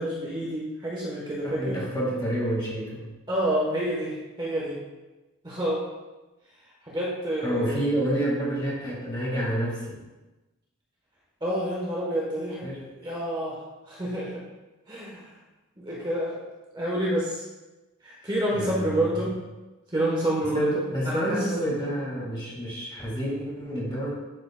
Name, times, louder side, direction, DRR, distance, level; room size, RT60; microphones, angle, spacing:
voice 1, 0.0-1.8 3.3-4.8 5.4-5.8 6.8-7.8 11.4-12.7 13.0-13.6 13.8-14.4 14.9-15.3 15.8-16.4 16.7-17.4 18.0-19.3 19.9-20.7 21.0-21.9, right 1 dB, 20° right, -5 dB, 1.1 m, -28 dB
voice 2, 1.4-3.1 7.4-10.0 12.6-12.9 18.5-19.1 20.5-24.1, right 1 dB, 20° left, -4 dB, 1.9 m, -29 dB
11.0 x 4.9 x 2.2 m, 1.1 s
head